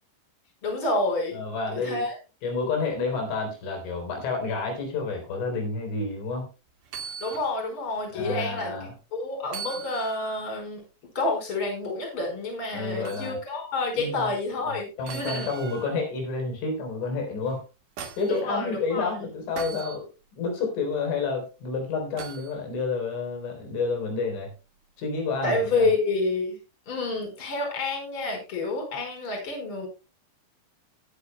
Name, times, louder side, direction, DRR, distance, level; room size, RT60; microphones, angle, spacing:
voice 1, 0.6-1.4 1.7-2.2 7.2-8.7 9.1-10.8 11.2-15.5 18.3-19.1 25.4-26.6 26.9-29.9, left 2 dB, 30° left, 2 dB, 5.2 m, -28 dB
voice 2, 1.3-2.0 2.4-6.5 8.1-8.9 12.7-13.4 14.0-14.6 15.0-17.6 18.2-24.5 25.0-25.9, left 4 dB, 85° left, 3 dB, 6.1 m, -30 dB
sound 1, 6.8-7.5 8.0-8.1 9.5-10.5 13.0-13.3 15.1-16.0 17.5-18.4 19.6-20.0 22.2-22.5 24.3-24.5, right 7 dB, 55° right, 2.9 m, -39 dB
20.5 x 8.7 x 2.2 m, 0.30 s
omnidirectional pair, 5.4 m